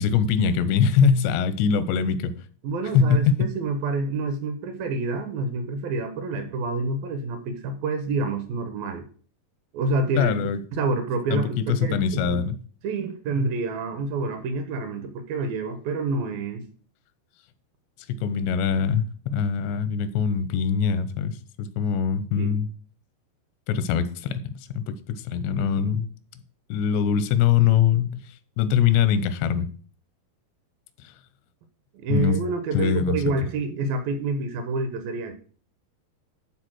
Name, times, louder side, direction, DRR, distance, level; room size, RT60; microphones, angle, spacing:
voice 1, 0.0-2.3 2.9-3.5 10.2-10.6 11.3-12.6 18.1-22.7 23.7-26.1 26.7-28.2 28.6-29.7 32.1-32.4 32.7-33.2, left 7 dB, 90° left, 3.0 m, -23 dB
voice 2, 2.6-9.1 9.7-10.3 10.7-12.4 12.8-16.7 22.4-22.6 31.9-35.3, right 3 dB, 75° right, 2.4 m, -28 dB
12.0 x 4.1 x 6.1 m
omnidirectional pair, 4.8 m